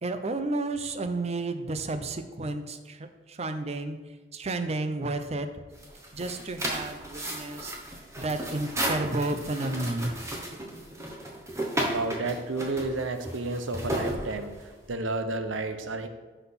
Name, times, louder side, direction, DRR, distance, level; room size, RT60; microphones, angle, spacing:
voice 1, 0.0-4.0 4.3-5.5 6.1-7.7 8.2-10.2, right 2 dB, 35° right, 9 dB, 0.6 m, -31 dB
sound 1, 5.7-14.9, right 1 dB, 15° right, 1.0 m, -34 dB
voice 2, 11.8-14.5 14.9-16.1, right 2 dB, 90° right, 8 dB, 0.8 m, -31 dB
5.9 x 5.7 x 5.8 m, 1.3 s
head